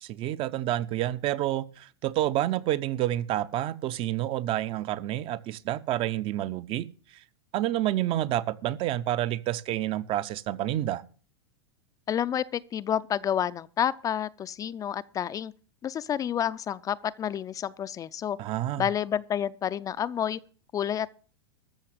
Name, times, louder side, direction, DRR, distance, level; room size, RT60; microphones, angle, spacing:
voice 1, 0.0-6.9 7.5-11.0 18.4-18.9, right 13 dB, 40° right, 0.7 m, -29 dB
voice 2, 12.1-15.5 15.8-18.4 18.8-20.4 20.7-21.1, left 9 dB, 25° left, 0.5 m, -29 dB
13.5 x 6.4 x 7.6 m
hypercardioid pair, 110°, 14 cm